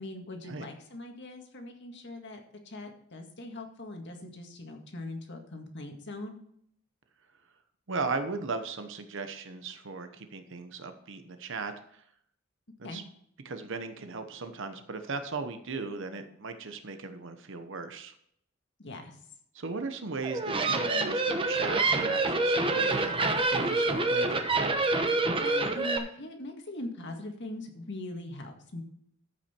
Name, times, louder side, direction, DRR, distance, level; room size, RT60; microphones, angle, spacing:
voice 1, 0.0-2.4 2.7-6.4 12.8-13.0 18.8-19.2 25.4-28.8, left 1 dB, 55° left, 3 dB, 1.9 m, -41 dB
voice 2, 7.9-11.7 12.8-13.0 13.4-18.1 19.5-23.2 23.5-24.4, right 4 dB, 60° right, 8 dB, 1.0 m, -37 dB
sound 1, 20.2-26.0, right 2 dB, 25° right, 1.0 m, -27 dB
14.0 x 6.0 x 4.4 m, 0.68 s
head